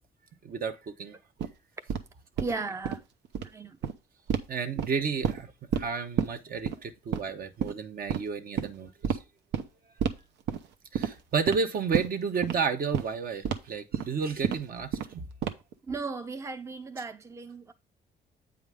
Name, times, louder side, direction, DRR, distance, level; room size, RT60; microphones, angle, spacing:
voice 1, 0.4-1.2 4.5-9.2 10.9-15.2, right 5 dB, 55° right, 1.1 m, -32 dB
sound 1, 1.4-1.5 1.9-2.0 2.4-2.5 2.8-3.0 3.3-3.5 3.8-3.9 4.3-4.4 4.8-5.4 5.7-5.9 6.2-6.3 6.7-6.8 7.1-7.3 7.6-7.7 8.1-8.2 8.6-8.7 9.0-9.2 9.5-9.6 10.0-10.2 10.5-10.7 10.9-11.1 11.5-11.6 11.9-12.1 12.4-12.6 12.9-13.1 13.4-13.6 13.9-14.1 14.4-14.6 14.9-15.1 15.4-15.7, right 8 dB, 85° right, 0.9 m, -29 dB
voice 2, 2.4-3.0 3.4-3.8 15.9-17.7, right 4 dB, 15° right, 0.6 m, -36 dB
8.5 x 5.0 x 3.5 m
cardioid pair, 95°, 18 cm